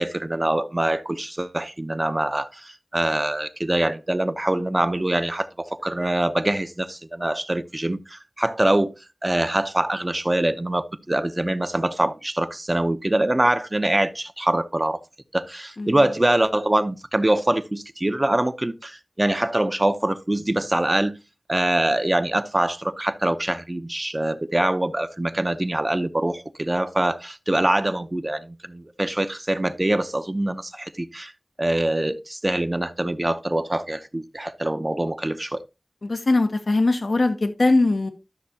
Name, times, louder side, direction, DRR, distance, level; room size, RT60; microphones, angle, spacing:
voice 1, 0.0-8.9 9.2-15.0 15.3-21.1 21.5-31.3 31.6-35.6, right 1 dB, 30° right, 0.7 m, -24 dB
voice 2, 36.0-38.1, left 2 dB, 80° left, 0.9 m, -21 dB
12.5 x 6.5 x 2.8 m
wide cardioid pair, 60°, 0 cm